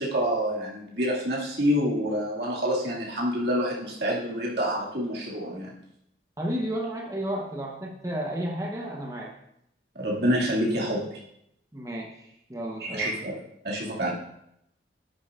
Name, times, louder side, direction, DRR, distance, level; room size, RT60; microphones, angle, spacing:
voice 1, 0.0-5.7 10.0-11.2 12.8-13.3 13.6-14.1, equal, 70° right, -4 dB, 2.1 m, -27 dB
voice 2, 6.4-9.3 11.7-13.1, right 1 dB, 20° right, 0 dB, 0.9 m, -32 dB
11.5 x 9.7 x 2.5 m, 0.76 s
head